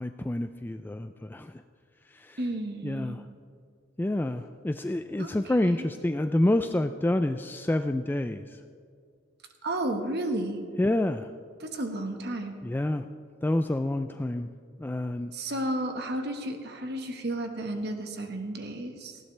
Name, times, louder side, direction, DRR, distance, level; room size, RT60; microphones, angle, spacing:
voice 1, 0.0-1.6 2.1-2.4 2.8-3.3 4.0-8.6 10.8-11.3 12.6-13.1 13.4-14.5 14.8-15.3, left 1 dB, 10° left, 8 dB, 0.3 m, -28 dB
voice 2, 2.4-3.2 5.2-5.3 9.6-10.6 11.6-12.5 15.3-19.2, right 1 dB, 60° right, 5 dB, 1.5 m, -32 dB
19.0 x 15.5 x 3.3 m, 2.2 s
head